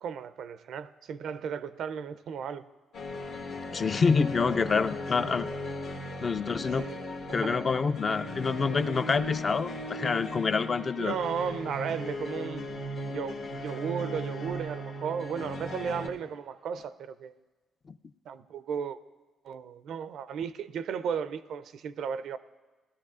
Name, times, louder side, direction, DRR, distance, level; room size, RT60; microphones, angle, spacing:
voice 1, 0.0-2.6 5.2-5.4 6.8-7.1 7.4-7.6 10.9-17.4 18.3-19.0 19.4-22.4, right 7 dB, 70° right, 14 dB, 0.4 m, -35 dB
sound 1, 2.9-16.1, left 1 dB, 70° left, 1.2 m, -37 dB
voice 2, 3.7-5.5 6.2-6.9 7.3-11.2, left 5 dB, 40° left, 11 dB, 0.4 m, -27 dB
17.5 x 12.5 x 2.4 m, 1.3 s
cardioid pair, 90°, 0 cm